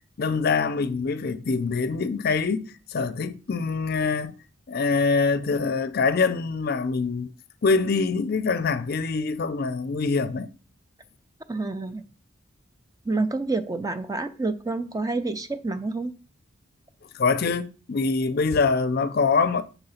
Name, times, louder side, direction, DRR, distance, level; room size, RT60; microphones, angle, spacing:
voice 1, 0.2-2.6 2.9-4.4 4.7-7.3 7.6-10.5 17.1-19.6, left 4 dB, 50° left, 0.5 m, -24 dB
voice 2, 11.5-12.1 13.0-16.1, right 3 dB, 20° right, 0.5 m, -28 dB
7.1 x 3.9 x 5.6 m
head